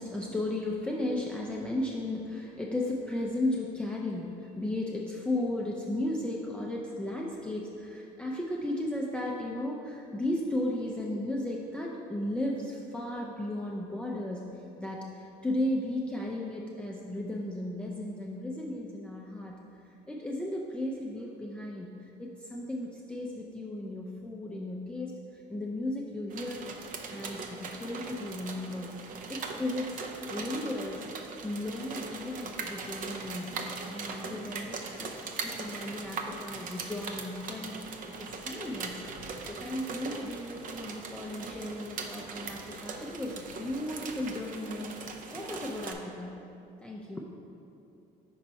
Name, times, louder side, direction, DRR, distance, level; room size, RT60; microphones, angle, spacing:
voice 1, 0.0-14.5 14.8-19.6 20.1-21.9 22.2-26.7 27.1-28.9 29.3-29.9 30.3-31.0 31.4-33.5 33.9-46.3 46.8-47.2, left 1 dB, 5° left, -3 dB, 0.4 m, -35 dB
sound 1, 26.3-45.9, right 4 dB, 55° right, 0.5 m, -40 dB
5.4 x 4.3 x 4.0 m, 2.8 s
cardioid pair, 110°, 17 cm